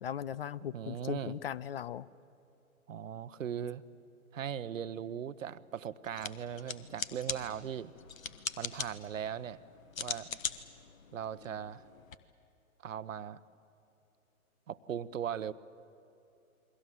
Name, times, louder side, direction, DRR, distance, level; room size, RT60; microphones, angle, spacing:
voice 1, 0.0-2.1, left 9 dB, 45° left, 22 dB, 0.5 m, -38 dB
voice 2, 0.7-1.4 2.9-3.8 4.3-7.9 8.6-9.6 10.0-10.3 11.1-11.8 12.8-13.4 14.7-15.5, right 9 dB, 65° right, 15 dB, 0.9 m, -39 dB
sound 1, 6.0-12.1, left 6 dB, 65° left, 1.4 m, -42 dB
29.0 x 22.5 x 7.6 m, 2.9 s
figure-of-eight pair, 125°, 43 cm